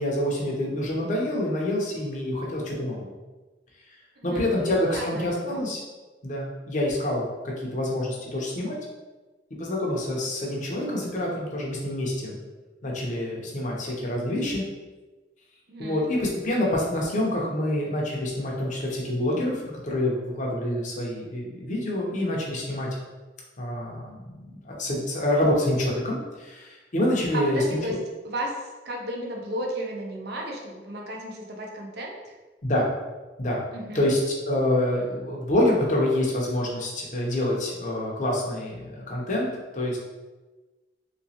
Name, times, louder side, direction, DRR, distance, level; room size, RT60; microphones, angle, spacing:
voice 1, 0.0-3.1 4.2-5.8 6.2-8.8 9.6-12.4 12.8-14.6 15.8-22.9 23.6-27.6 32.6-32.9 33.4-33.6 33.9-39.5 39.7-40.0, left 1 dB, 45° left, -3 dB, 0.7 m, -27 dB
voice 2, 4.2-5.7 15.7-16.1 27.3-28.0 28.2-32.3 33.7-34.1, right 1 dB, 60° right, 0 dB, 0.6 m, -34 dB
3.1 x 3.0 x 2.9 m, 1.2 s
head